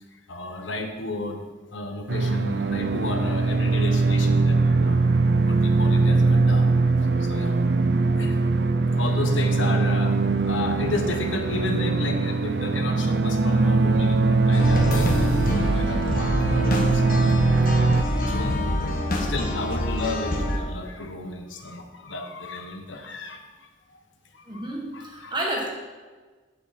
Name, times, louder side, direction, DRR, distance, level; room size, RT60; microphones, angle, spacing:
voice 1, 0.3-1.4 1.7-5.1 5.4-6.7 7.2-7.6 8.2-8.4 9.0-10.2 10.5-17.7 18.3-24.0 24.3-24.7 24.9-25.4, left 2 dB, 90° left, 4 dB, 1.2 m, -33 dB
sound 1, 2.1-18.0, right 3 dB, 60° right, 0.5 m, -21 dB
sound 2, 14.5-20.6, left 1 dB, 45° left, 1.3 m, -26 dB
sound 3, 14.7-19.6, left 4 dB, 65° left, 2.2 m, -39 dB
voice 2, 24.5-25.7, right 1 dB, 25° right, -1 dB, 1.7 m, -33 dB
15.5 x 5.4 x 4.3 m, 1.4 s
head